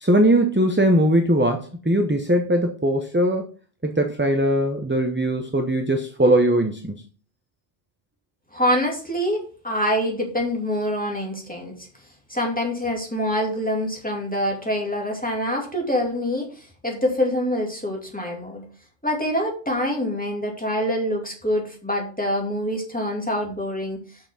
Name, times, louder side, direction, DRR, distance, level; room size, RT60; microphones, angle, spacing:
voice 1, 0.0-3.4 3.8-7.0, right 1 dB, 10° right, 5 dB, 0.7 m, -20 dB
voice 2, 8.5-11.9 12.3-18.7 19.0-24.0, equal, 5° left, -1 dB, 2.4 m, -25 dB
6.9 x 5.8 x 5.6 m, 0.38 s
omnidirectional pair, 1.1 m